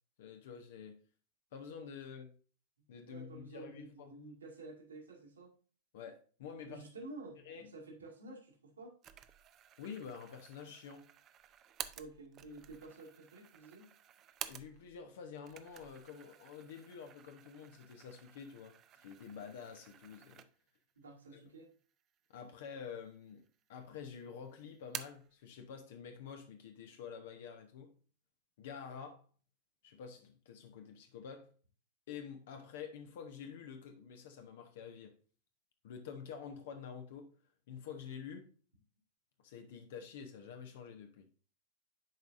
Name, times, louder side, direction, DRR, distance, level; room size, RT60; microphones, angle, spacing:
voice 1, 0.2-1.0 1.5-2.4 2.9-4.2 5.9-6.8 7.4-7.7 9.8-11.1 14.4-20.4 21.3-21.5 22.3-27.9 28.6-29.2 29.8-31.5 32.1-35.1 35.8-37.3 37.7-38.5 39.4-41.3, left 7 dB, 55° left, 0.8 m, -48 dB
voice 2, 3.1-5.5 6.6-8.9 12.0-13.9 21.0-21.7, right 2 dB, 75° right, 2.0 m, -51 dB
sound 1, 9.0-15.0 15.3-20.8 21.2-21.3 22.2-22.8 23.1-23.9 24.2-25.3, right 10 dB, 30° right, 0.5 m, -51 dB
10.5 x 4.7 x 2.6 m
figure-of-eight pair, 90°, 0 cm